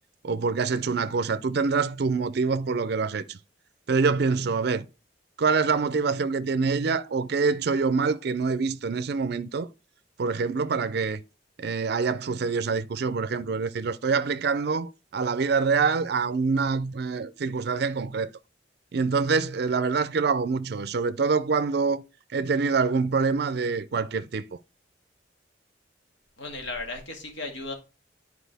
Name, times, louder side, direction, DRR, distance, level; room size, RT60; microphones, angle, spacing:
voice 1, 0.2-3.4 3.9-4.8 5.4-9.7 10.2-11.2 11.6-18.3 18.9-22.0 22.3-24.6, right 4 dB, 60° right, 0.4 m, -25 dB
voice 2, 26.4-27.7, left 2 dB, 85° left, 1.8 m, -35 dB
10.0 x 4.8 x 3.4 m
head